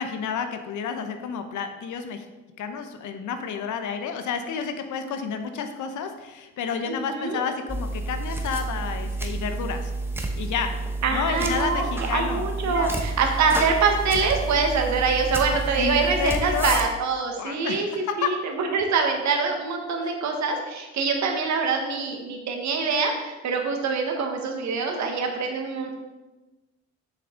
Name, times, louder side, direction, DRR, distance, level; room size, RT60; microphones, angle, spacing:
voice 1, 0.0-2.2 2.6-9.9 10.4-13.0 15.8-16.8 17.3-18.3 20.0-20.2, left 6 dB, 75° left, 7 dB, 0.9 m, -30 dB
voice 2, 6.9-7.4 11.0-26.0, right 4 dB, 65° right, 3 dB, 1.4 m, -25 dB
sound 1, 7.7-16.9, right 2 dB, 5° right, 1.0 m, -30 dB
6.7 x 6.2 x 3.8 m, 1.1 s
cardioid pair, 90°, 30 cm